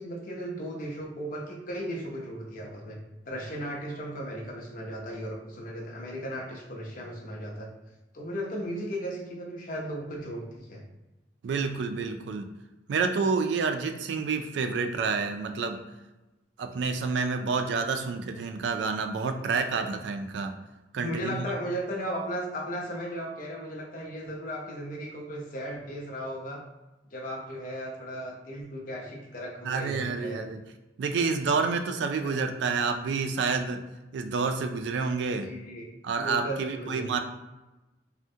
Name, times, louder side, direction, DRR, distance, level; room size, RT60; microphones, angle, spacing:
voice 1, 0.0-3.0 3.3-7.7 8.1-10.8 20.9-26.6 27.1-30.4 32.2-32.3 35.3-35.9 36.2-37.2, equal, 50° left, -1 dB, 0.6 m, -36 dB
voice 2, 11.4-12.5 12.9-15.8 16.6-20.6 20.9-21.4 29.6-30.6 31.0-33.8 34.1-35.5 36.0-37.2, right 4 dB, 75° right, 6 dB, 0.3 m, -29 dB
3.4 x 2.1 x 2.7 m, 1.0 s
head